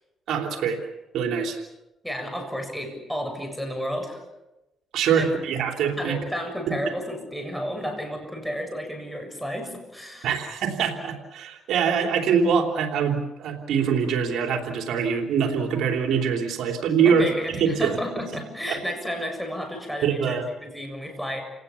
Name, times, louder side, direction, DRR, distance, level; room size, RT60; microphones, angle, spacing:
voice 1, 0.3-0.9 1.1-1.6 4.9-6.1 10.2-18.0 18.7-18.8 20.0-20.4, right 6 dB, 80° right, 3 dB, 3.3 m, -24 dB
voice 2, 2.0-4.2 5.2-5.3 6.0-10.3 17.0-21.4, equal, ahead, 4 dB, 7.2 m, -32 dB
30.0 x 18.5 x 7.1 m, 0.97 s
cardioid pair, 90°, 0 cm